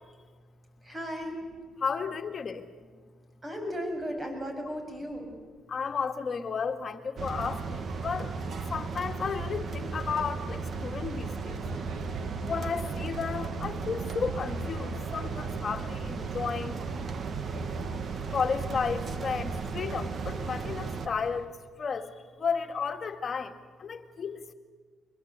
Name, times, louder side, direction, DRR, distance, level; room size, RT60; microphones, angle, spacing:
voice 1, 0.8-1.4 3.4-5.3, equal, 20° right, 4 dB, 7.4 m, -35 dB
voice 2, 1.8-2.7 5.7-8.3 8.7-11.6 12.4-16.8 18.3-24.5, left 5 dB, 45° left, 6 dB, 2.0 m, -33 dB
sound 1, 7.2-21.1, right 4 dB, 50° right, 1.9 m, -35 dB
sound 2, 10.6-21.5, right 4 dB, 80° right, 2.8 m, -45 dB
24.5 x 21.5 x 8.4 m, 1.5 s
cardioid pair, 90°, 0 cm